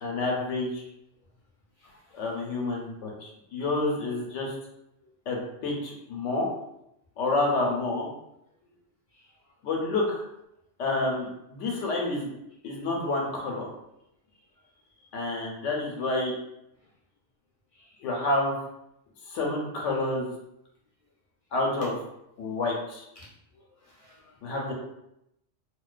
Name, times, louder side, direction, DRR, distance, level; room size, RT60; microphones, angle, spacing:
voice 1, 0.0-0.8 2.1-4.5 5.3-6.5 7.2-8.1 9.6-10.2 10.8-12.3 12.6-13.7 15.1-16.4 18.0-18.6 19.3-20.3 21.5-21.9 22.4-23.0 24.4-24.7, left 2 dB, 85° left, -1 dB, 1.0 m, -29 dB
voice 2, 1.8-2.2 5.0-5.1 9.1-9.3 14.3-14.4 14.9-15.2 17.7-18.0 23.2-23.3 23.5-24.4, left 1 dB, 50° left, -6 dB, 0.4 m, -58 dB
2.4 x 2.2 x 2.4 m, 0.81 s
omnidirectional pair, 1.2 m